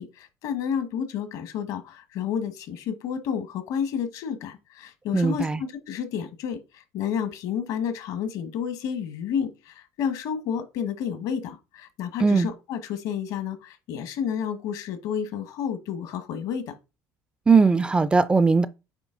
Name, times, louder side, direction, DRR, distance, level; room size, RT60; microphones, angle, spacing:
voice 1, 0.0-16.8, left 8 dB, 70° left, 1.3 m, -30 dB
voice 2, 5.1-5.6 12.2-12.5 17.5-18.7, right 4 dB, 15° right, 0.4 m, -19 dB
8.9 x 3.0 x 3.8 m
cardioid pair, 125°, 6 cm